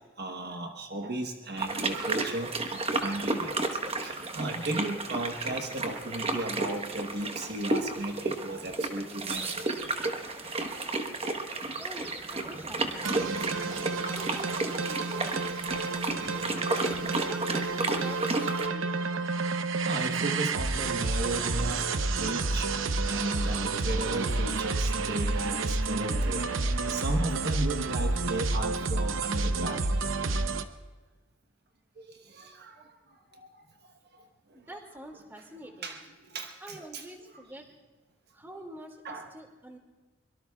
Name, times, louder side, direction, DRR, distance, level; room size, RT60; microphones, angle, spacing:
voice 1, 0.0-3.6 4.0-9.7 10.2-11.1 12.2-12.5 13.6-14.3 16.0-16.5 16.8-16.9 17.5-17.8 19.8-29.9 32.0-32.7 33.3-33.6 34.1-34.2 35.8-36.0 36.3-37.0 39.0-39.3, right 2 dB, 55° right, 4 dB, 1.1 m, -36 dB
sound 1, 1.6-18.7, right 2 dB, 30° right, 1.2 m, -32 dB
voice 2, 11.8-13.1 14.1-15.4 17.2-18.9 34.5-36.0 36.6-37.6 38.3-39.8, right 1 dB, 10° right, 3 dB, 2.3 m, -46 dB
sound 2, 13.0-30.6, right 3 dB, 80° right, 0.8 m, -30 dB
24.5 x 23.0 x 2.4 m, 1.3 s
head